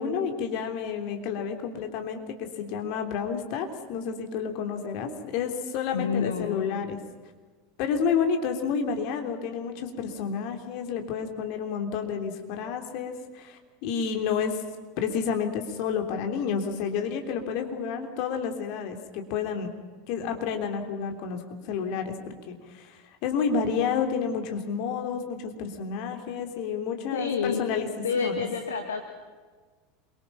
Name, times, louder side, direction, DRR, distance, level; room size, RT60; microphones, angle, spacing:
voice 1, 0.0-7.0 7.8-14.6 15.0-19.7 20.1-27.9 28.1-28.4, left 6 dB, 50° left, 5 dB, 3.3 m, -30 dB
voice 2, 5.9-6.6 27.1-27.7 28.0-29.0, left 6 dB, 75° left, 5 dB, 2.0 m, -28 dB
28.0 x 23.5 x 5.9 m, 1.4 s
figure-of-eight pair, 80°, 0 cm